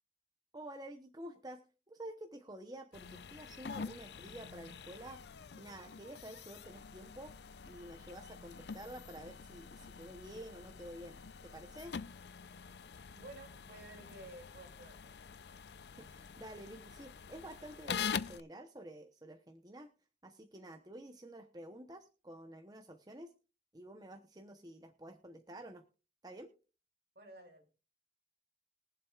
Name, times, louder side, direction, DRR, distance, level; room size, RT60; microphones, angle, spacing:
voice 1, 0.5-1.6 1.9-5.2 5.6-7.3 7.7-11.9 16.0-19.9 20.2-23.3 23.7-25.8 26.2-26.5, right 1 dB, 20° right, 5 dB, 0.9 m, -50 dB
sound 1, 2.9-18.4, left 6 dB, 75° left, 0.5 m, -45 dB
voice 2, 13.1-15.1 27.1-27.7, right 2 dB, 65° right, 3 dB, 3.0 m, -53 dB
22.5 x 7.6 x 2.4 m, 0.34 s
head